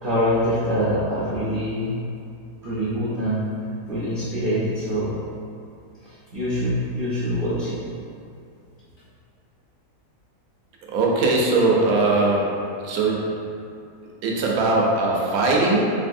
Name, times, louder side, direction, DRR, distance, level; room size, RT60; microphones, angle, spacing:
voice 1, 0.0-1.9 2.6-3.5 3.9-5.2 6.0-7.8, equal, 50° right, -11 dB, 0.6 m, -24 dB
voice 2, 10.9-12.5 12.8-13.2 14.2-15.9, right 2 dB, 70° right, -2 dB, 1.1 m, -20 dB
3.9 x 3.3 x 2.6 m, 2.5 s
omnidirectional pair, 1.7 m